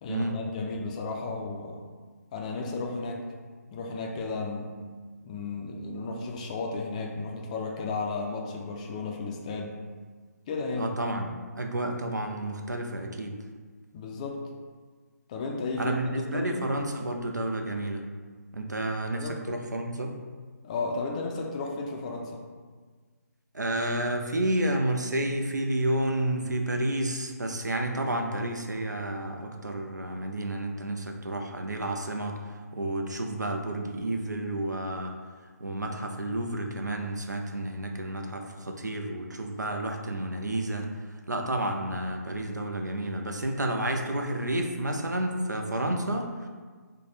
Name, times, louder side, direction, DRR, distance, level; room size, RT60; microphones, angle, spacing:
voice 1, 0.0-1.8 2.3-3.2 3.7-4.8 5.2-9.7 10.5-10.9 13.9-14.4 15.3-16.7 19.2-19.4 20.6-22.4, left 3 dB, 25° left, 0 dB, 0.4 m, -34 dB
voice 2, 10.8-13.4 15.8-18.0 18.5-20.2 23.5-35.1 35.6-40.9 41.3-46.5, right 1 dB, 90° right, 3 dB, 0.5 m, -30 dB
3.2 x 2.2 x 4.2 m, 1.5 s
figure-of-eight pair, 145°, 9 cm